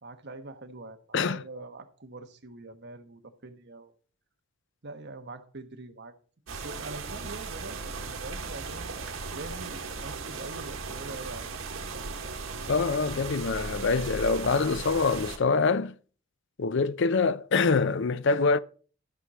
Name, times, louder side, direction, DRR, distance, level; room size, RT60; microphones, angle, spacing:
voice 1, 0.0-3.9 4.8-6.1 6.5-11.6, right 2 dB, 55° right, 1.2 m, -44 dB
sound 1, 6.5-15.4, right 4 dB, 90° right, 1.5 m, -37 dB
voice 2, 12.7-15.9 16.6-18.6, left 4 dB, 60° left, 0.5 m, -25 dB
13.5 x 6.3 x 4.2 m
head